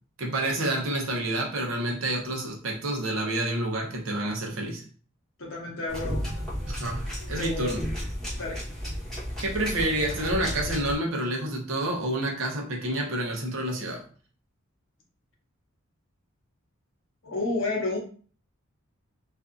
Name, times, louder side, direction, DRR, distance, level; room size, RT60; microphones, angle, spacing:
voice 1, 0.2-4.8 6.7-7.8 9.4-14.0, right 1 dB, 65° right, 0 dB, 0.7 m, -29 dB
voice 2, 5.4-6.2 7.2-7.6 8.3-8.6 17.2-18.0, left 2 dB, 65° left, -1 dB, 0.8 m, -31 dB
sound 1, 5.9-10.9, equal, ahead, 1.0 m, -33 dB
2.6 x 2.4 x 2.4 m, 0.42 s
head